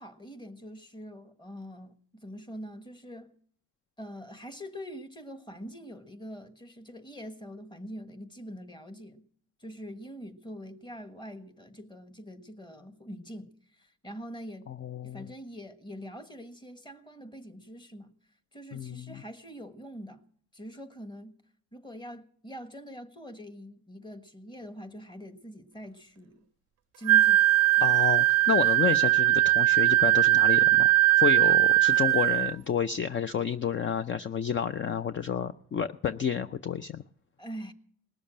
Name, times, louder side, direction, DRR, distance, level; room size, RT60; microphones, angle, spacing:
voice 1, 0.0-3.3 4.0-9.2 9.6-14.7 15.0-18.1 18.5-20.2 20.5-21.3 21.7-26.4 27.0-27.5 27.8-27.9 37.4-37.7, equal, 15° left, 1.4 m, -44 dB
voice 2, 14.7-15.3 18.7-19.2 27.8-37.0, left 8 dB, 40° left, 0.5 m, -30 dB
Wind instrument woodwind instrument, 27.1-32.5, right 16 dB, 60° right, 0.5 m, -21 dB
19.5 x 7.0 x 8.9 m
cardioid pair, 90°, 30 cm